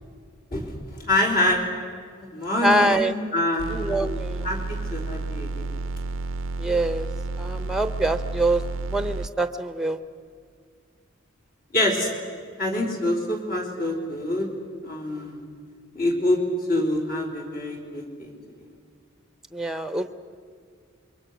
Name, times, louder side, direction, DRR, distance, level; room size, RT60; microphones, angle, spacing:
voice 1, 1.0-1.7 2.2-3.7 4.4-5.7 11.7-12.1 12.6-14.5 14.8-15.4 15.9-16.4 16.7-18.3, left 1 dB, 45° left, 0 dB, 3.9 m, -25 dB
voice 2, 2.6-3.2 3.7-4.6 6.6-7.1 7.4-8.6 8.9-10.0 16.7-16.8 19.5-20.1, right 1 dB, 5° right, 10 dB, 0.8 m, -24 dB
sound 1, 3.6-9.3, right 3 dB, 75° right, 0.5 m, -31 dB
27.5 x 23.5 x 6.2 m, 2.1 s
head